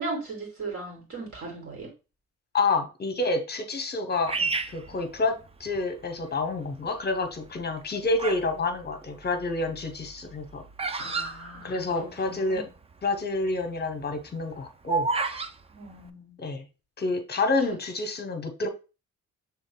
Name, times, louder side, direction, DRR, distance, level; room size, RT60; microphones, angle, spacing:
voice 1, 0.0-1.9 4.3-4.5 11.0-12.7 15.7-16.4 17.6-17.8, right 3 dB, 50° right, 2.8 m, -37 dB
voice 2, 2.5-4.4 4.7-10.6 11.6-12.6 13.0-15.4 16.4-16.6 17.0-18.7, left 3 dB, 35° left, 1.0 m, -28 dB
Bird vocalization bird call bird song, 4.3-5.8 6.4-6.9 7.6-8.5 8.8-12.3 12.6-12.7 12.8-13.2 13.6-15.5, right 4 dB, 20° right, 0.4 m, -31 dB
6.3 x 3.5 x 2.3 m
cardioid pair, 90°, 30 cm